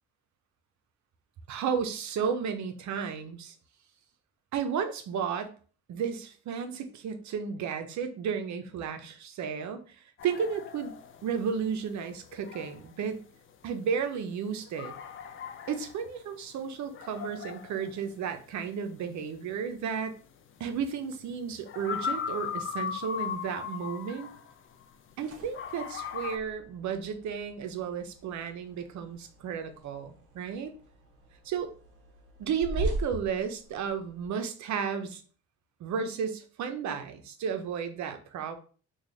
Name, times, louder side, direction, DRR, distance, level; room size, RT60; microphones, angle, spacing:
voice 1, 1.5-3.5 4.5-5.5 5.9-10.9 11.2-13.2 13.6-14.9 15.7-20.2 20.6-24.3 25.2-30.7 31.4-31.7 32.4-35.2 35.8-38.6, right 7 dB, 65° right, 8 dB, 0.6 m, -33 dB
sound 1, 10.2-25.1 25.5-26.4, left 7 dB, 45° left, 0.5 m, -39 dB
sound 2, 25.1-34.3, right 1 dB, 50° right, 1.1 m, -41 dB
3.0 x 2.3 x 3.8 m, 0.40 s
cardioid pair, 90°, 30 cm